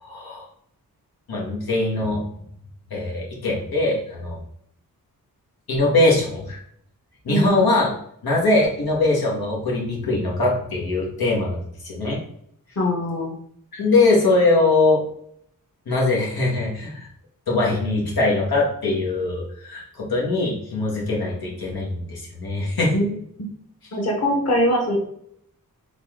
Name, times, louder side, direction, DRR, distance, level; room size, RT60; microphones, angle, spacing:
voice 1, 0.0-0.5 1.3-2.2 2.9-4.4 5.7-6.6 7.2-7.9 8.2-11.6 11.8-12.2 13.7-15.0 15.8-17.1 17.5-22.9, left 2 dB, 90° left, -3 dB, 1.5 m, -21 dB
voice 2, 7.3-7.7 12.8-13.3 22.9-23.1 23.9-25.0, equal, 45° left, 0 dB, 1.0 m, -22 dB
4.1 x 3.2 x 3.7 m, 0.68 s
wide cardioid pair, 95°, 35 cm